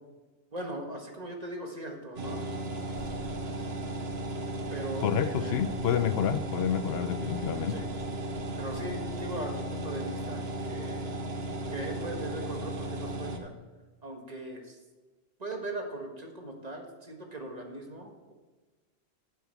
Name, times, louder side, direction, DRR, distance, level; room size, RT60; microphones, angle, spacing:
voice 1, 0.5-2.4 4.7-5.6 7.7-7.9 8.6-11.0 11.7-13.5 14.0-14.8 15.4-18.3, right 1 dB, 40° right, 2 dB, 1.6 m, -39 dB
sound 1, 2.2-13.4, right 1 dB, 75° right, 1.3 m, -35 dB
sound 2, 2.9-9.4, equal, 55° left, 2.1 m, -53 dB
voice 2, 5.0-7.7, left 8 dB, 75° left, 12 dB, 0.9 m, -29 dB
9.0 x 7.7 x 8.6 m, 1.2 s
omnidirectional pair, 1.1 m